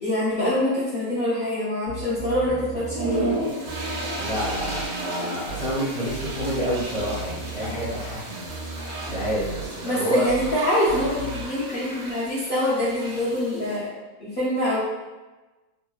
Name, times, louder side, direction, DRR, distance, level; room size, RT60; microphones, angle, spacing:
voice 1, 0.0-3.4 9.8-13.9 14.2-14.8, left 1 dB, 50° left, -11 dB, 0.7 m, -25 dB
sound 1, 1.9-3.4 3.7-4.9 5.5-5.7 6.1-8.2 8.5-9.7 10.3-10.5 10.9-11.4, right 2 dB, 80° left, 1.1 m, -36 dB
sound 2, 2.8-13.8, right 2 dB, 70° right, 0.8 m, -34 dB
voice 2, 4.2-8.5 9.0-10.2, equal, 5° left, -9 dB, 0.6 m, -29 dB
2.9 x 2.5 x 2.2 m, 1.2 s
omnidirectional pair, 1.6 m